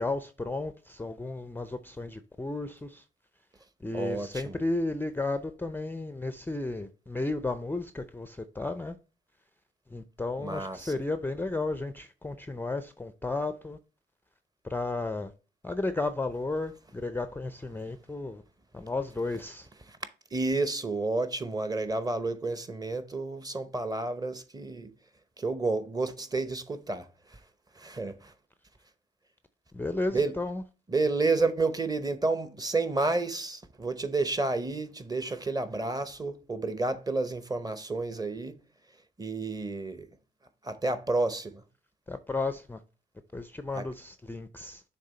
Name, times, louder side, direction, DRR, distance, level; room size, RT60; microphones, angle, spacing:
voice 1, 0.0-3.0 3.8-9.0 9.9-13.8 14.7-15.3 15.6-18.4 18.7-19.7 29.7-30.6 42.1-42.8 43.3-44.8, left 2 dB, 10° left, 0.5 m, -33 dB
voice 2, 3.9-4.6 10.4-10.9 17.8-17.9 19.9-20.0 20.3-24.9 25.4-27.4 27.7-28.3 30.1-30.4 30.9-38.6 39.2-40.1 40.6-41.6 43.7-43.9, right 3 dB, 20° right, 0.8 m, -30 dB
6.7 x 3.5 x 4.3 m
cardioid pair, 90°, 20 cm